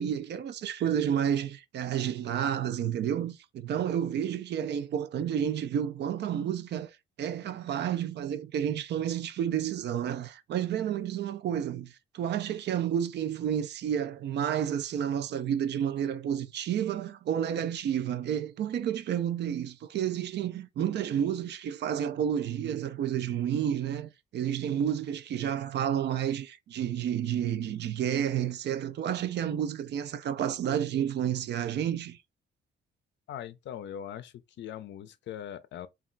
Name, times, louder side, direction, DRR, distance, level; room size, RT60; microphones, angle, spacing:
voice 1, 0.0-6.9 7.2-32.2, right 9 dB, 60° right, 0.4 m, -30 dB
voice 2, 33.3-35.9, left 10 dB, 65° left, 0.4 m, -41 dB
2.3 x 2.1 x 3.8 m
cardioid pair, 90°, 20 cm